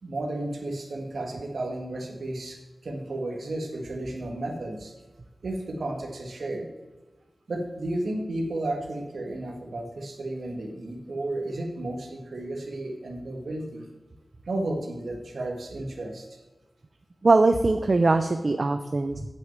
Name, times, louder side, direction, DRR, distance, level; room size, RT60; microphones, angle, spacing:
voice 1, 0.0-2.6 2.8-4.9 5.4-6.7 7.5-13.9 14.5-16.3, right 1 dB, 85° right, 2 dB, 1.8 m, -33 dB
voice 2, 17.2-19.2, right 3 dB, 50° right, 8 dB, 0.6 m, -21 dB
8.4 x 6.4 x 7.3 m, 1.2 s
wide cardioid pair, 90°, 0 cm